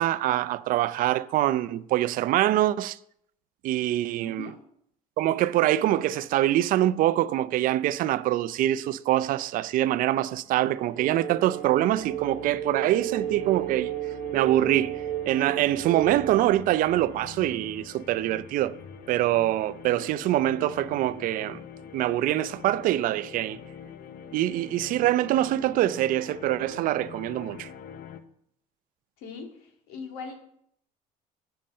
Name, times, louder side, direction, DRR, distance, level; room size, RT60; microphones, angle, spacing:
voice 1, 0.0-3.0 3.6-4.5 5.2-13.9 14.3-18.8 19.1-21.6 21.9-23.6 24.3-27.7, right 14 dB, 60° right, 0.4 m, -24 dB
voice 2, 4.2-4.6 29.2-30.4, left 5 dB, 80° left, 2.0 m, -40 dB
sound 1, 10.3-28.2, left 7 dB, 65° left, 0.8 m, -45 dB
sound 2, 11.0-16.5, right 12 dB, 85° right, 0.7 m, -33 dB
7.5 x 5.6 x 7.4 m
cardioid pair, 115°, 16 cm